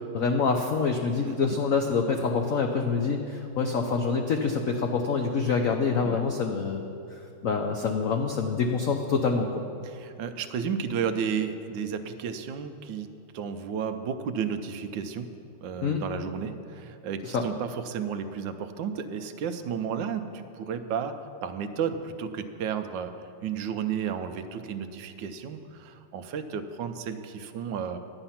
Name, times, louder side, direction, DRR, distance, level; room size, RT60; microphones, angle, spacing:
voice 1, 0.1-6.8 7.1-9.6 15.8-16.0 17.2-17.4, left 5 dB, 85° left, 4 dB, 0.7 m, -26 dB
voice 2, 9.8-15.3 15.6-21.1 21.4-23.1 23.4-28.0, right 7 dB, 75° right, 8 dB, 1.2 m, -32 dB
11.5 x 8.9 x 5.7 m, 2.7 s
omnidirectional pair, 2.3 m